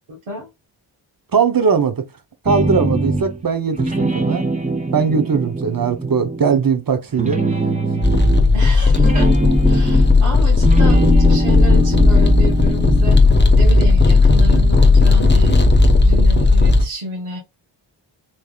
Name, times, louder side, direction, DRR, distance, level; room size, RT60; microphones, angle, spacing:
voice 1, 0.1-0.5 8.5-9.3 9.6-13.2 13.5-15.6 16.0-17.4, right 1 dB, 85° right, 1.5 m, -30 dB
voice 2, 1.3-2.0 2.4-4.5 4.9-7.4, right 6 dB, 45° right, 0.9 m, -19 dB
sound 1, 2.5-3.4 3.7-6.8 7.1-10.3 10.6-13.3, right 1 dB, 15° right, 1.2 m, -22 dB
sound 2, 8.0-16.9, left 3 dB, 20° left, 1.0 m, -13 dB
4.4 x 3.3 x 2.4 m
cardioid pair, 55°, 49 cm